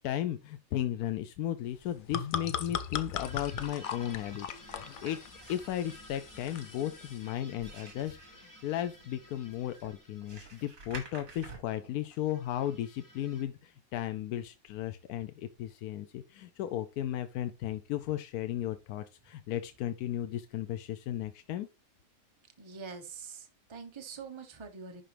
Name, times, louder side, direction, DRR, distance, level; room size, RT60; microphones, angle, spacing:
voice 1, 0.0-5.2 5.5-21.7, left 12 dB, 90° left, 1.1 m, -35 dB
sound 1, 1.8-7.2, left 8 dB, 65° left, 0.5 m, -39 dB
sound 2, 3.2-11.0 12.1-13.4, equal, 15° left, 1.3 m, -54 dB
sound 3, 4.6-12.2, right 3 dB, 65° right, 2.6 m, -51 dB
voice 2, 22.6-25.0, right 5 dB, 25° right, 0.9 m, -45 dB
11.0 x 3.8 x 3.3 m
omnidirectional pair, 1.5 m